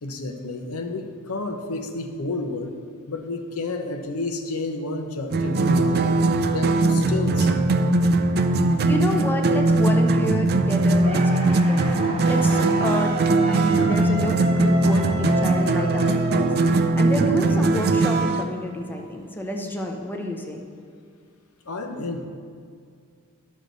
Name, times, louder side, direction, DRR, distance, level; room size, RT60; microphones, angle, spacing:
voice 1, 0.0-2.7 3.1-6.1 6.5-7.9 21.7-22.3, left 3 dB, 75° left, 5 dB, 0.8 m, -30 dB
sound 1, 5.3-18.4, right 2 dB, 45° right, 0.4 m, -20 dB
voice 2, 8.8-11.9 12.2-13.2 13.5-20.6, left 1 dB, 10° left, 1 dB, 0.7 m, -29 dB
sound 2, 11.0-17.1, right 1 dB, 25° right, 0.9 m, -32 dB
11.5 x 6.3 x 4.0 m, 2.2 s
head